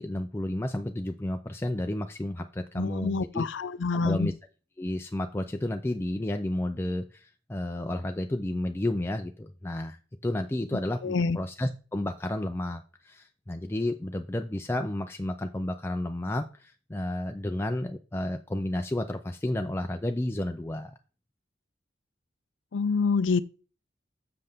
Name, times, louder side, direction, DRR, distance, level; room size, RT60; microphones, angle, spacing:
voice 1, 0.0-3.5 4.0-4.3 4.8-20.9, left 1 dB, 15° left, 0.4 m, -31 dB
voice 2, 2.8-4.3 11.0-11.4 22.7-23.4, left 4 dB, 90° left, 0.5 m, -26 dB
7.6 x 6.7 x 3.5 m
head